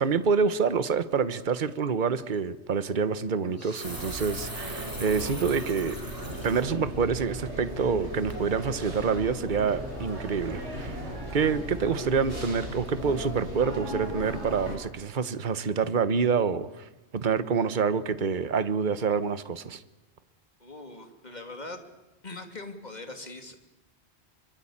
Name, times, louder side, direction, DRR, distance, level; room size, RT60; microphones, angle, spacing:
voice 1, 0.0-5.9 6.4-11.0 11.3-19.8, right 5 dB, 45° right, 13 dB, 1.2 m, -27 dB
sound 1, 2.2-2.4 3.4-6.7 7.1-7.2 7.7-8.1 8.3-8.4, right 1 dB, 20° right, 3.5 m, -42 dB
sound 2, 3.8-14.8, right 1 dB, 85° right, 6.6 m, -37 dB
sound 3, 6.2-13.4, left 1 dB, 5° left, 2.6 m, -44 dB
voice 2, 20.6-21.8 22.2-23.6, left 2 dB, 40° left, 6 dB, 3.0 m, -41 dB
25.5 x 24.0 x 8.8 m, 1.0 s
omnidirectional pair, 1.1 m